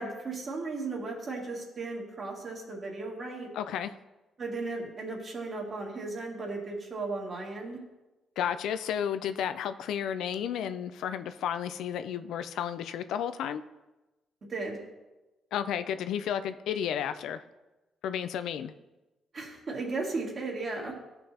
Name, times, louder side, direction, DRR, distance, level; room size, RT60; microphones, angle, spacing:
voice 1, 0.0-3.5 4.4-7.8 14.5-14.8 19.3-20.9, right 3 dB, 45° right, -2 dB, 2.2 m, -35 dB
voice 2, 3.5-3.9 8.4-13.6 15.5-17.4 18.0-18.7, left 9 dB, 80° left, 11 dB, 0.4 m, -32 dB
13.5 x 5.3 x 2.9 m, 1.1 s
cardioid pair, 90°, 0 cm